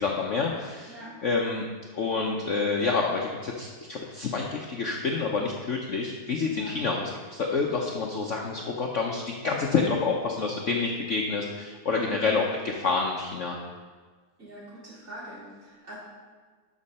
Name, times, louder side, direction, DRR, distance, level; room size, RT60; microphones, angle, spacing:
voice 1, 0.0-1.6 1.9-13.6, left 4 dB, 55° left, 0 dB, 0.9 m, -28 dB
voice 2, 14.4-16.0, right 1 dB, 40° right, -9 dB, 4.0 m, -43 dB
13.0 x 6.4 x 4.2 m, 1.5 s
omnidirectional pair, 1.9 m